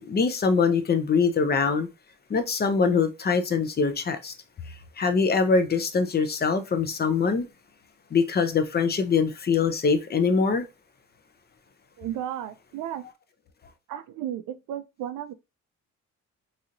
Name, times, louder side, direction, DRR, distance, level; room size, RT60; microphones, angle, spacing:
voice 1, 0.0-1.9 2.3-4.3 4.7-7.5 8.1-10.6, left 5 dB, 35° left, 0.6 m, -23 dB
voice 2, 12.0-13.0 13.9-15.3, right 11 dB, 85° right, 0.5 m, -34 dB
3.0 x 2.8 x 2.5 m
cardioid pair, 90°, 30 cm